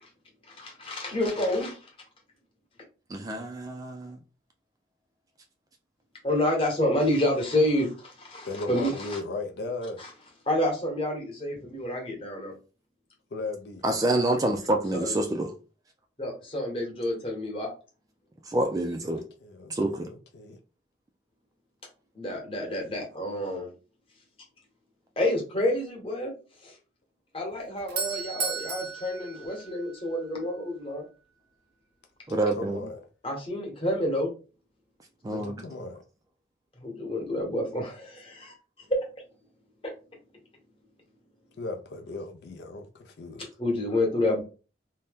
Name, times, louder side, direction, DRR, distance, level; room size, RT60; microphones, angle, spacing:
voice 1, 0.5-1.8 6.2-9.2 10.0-10.1 10.5-12.5 14.9-15.1 16.2-17.7 22.1-23.7 25.2-26.3 26.6-26.7 27.3-31.0 33.2-34.3 36.8-38.5 43.6-44.4, left 1 dB, 30° left, 1.0 m, -28 dB
voice 2, 3.1-4.2 13.8-15.5 18.5-19.2 19.7-20.0 32.3-32.8 35.2-35.5, right 1 dB, 20° right, 0.3 m, -27 dB
voice 3, 8.4-10.0 13.3-13.8 19.1-20.6 32.6-33.1 35.3-36.0 41.6-43.5, left 2 dB, 65° left, 0.4 m, -37 dB
Doorbell, 27.5-30.4, right 5 dB, 60° right, 0.6 m, -34 dB
2.7 x 2.1 x 3.4 m
head